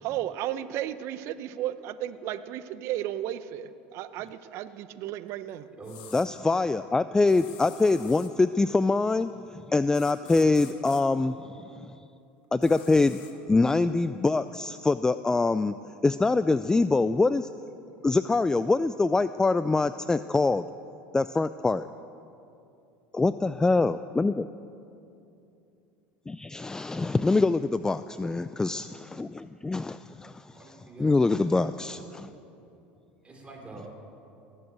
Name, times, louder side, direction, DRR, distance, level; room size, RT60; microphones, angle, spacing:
voice 1, 0.0-5.7, right 12 dB, 60° right, 13 dB, 0.8 m, -34 dB
sound 1, 5.8-6.3 7.3-8.3 9.9-11.0 12.6-13.3, left 10 dB, 70° left, 1.7 m, -48 dB
voice 2, 6.1-11.7 12.5-13.2 13.5-15.7 16.0-17.5 18.0-20.6 21.1-21.9 23.1-24.5 26.3-30.5 31.0-32.3, left 3 dB, 10° left, 13 dB, 0.3 m, -24 dB
voice 3, 30.5-32.1 33.2-33.9, right 2 dB, 20° right, 0 dB, 4.3 m, -46 dB
19.5 x 7.9 x 8.0 m, 2.7 s
hypercardioid pair, 80°, 5 cm